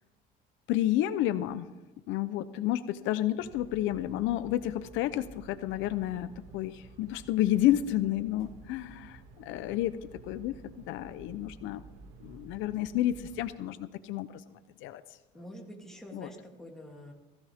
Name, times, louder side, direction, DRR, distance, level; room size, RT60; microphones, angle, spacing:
voice 1, 0.7-1.7 2.1-10.0 10.2-10.6 10.9-11.8 12.2-14.3 14.8-15.0 16.1-16.3, left 13 dB, 75° left, 12 dB, 0.8 m, -30 dB
sound 1, 3.3-13.5, right 3 dB, 85° right, 2.3 m, -52 dB
voice 2, 15.3-17.1, equal, ahead, -1 dB, 2.8 m, -46 dB
19.0 x 16.0 x 3.6 m, 1.1 s
cardioid pair, 145°, 20 cm